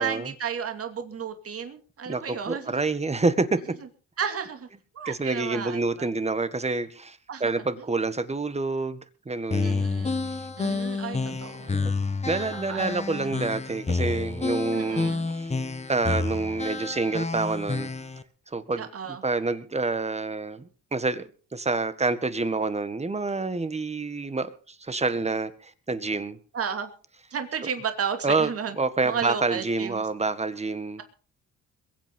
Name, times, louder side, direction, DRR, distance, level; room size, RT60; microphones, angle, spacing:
voice 1, 0.0-2.8 4.2-4.7 4.9-6.1 7.3-7.5 9.6-10.3 10.6-11.8 12.5-13.3 14.7-15.3 18.8-19.2 26.5-26.9 27.3-28.8 29.0-30.0, right 7 dB, 50° right, 7 dB, 2.7 m, -33 dB
voice 2, 2.1-3.6 5.1-9.0 9.3-9.9 10.3-10.5 11.3-11.4 11.7-11.9 12.3-15.5 15.9-17.9 18.5-26.4 28.2-31.0, right 3 dB, 20° right, 12 dB, 1.7 m, -28 dB
sound 1, 9.5-18.2, left 3 dB, 20° left, 1.5 m, -29 dB
22.5 x 8.5 x 5.4 m, 0.39 s
cardioid pair, 90°, 30 cm